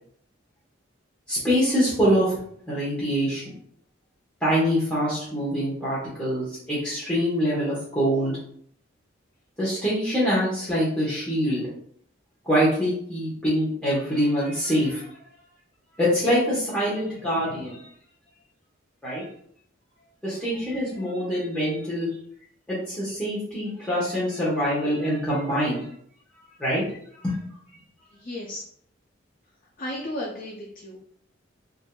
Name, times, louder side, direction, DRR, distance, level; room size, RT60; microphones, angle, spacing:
voice 1, 1.3-2.4 2.7-3.6 4.4-8.3 9.6-11.7 12.4-15.1 16.0-17.8 19.0-19.2 20.2-22.1 22.7-25.8 26.6-26.9 27.2-27.4, equal, 5° left, -10 dB, 1.0 m, -24 dB
voice 2, 28.1-28.6 29.8-31.0, left 1 dB, 45° left, -2 dB, 0.5 m, -34 dB
4.3 x 2.6 x 2.2 m, 0.65 s
head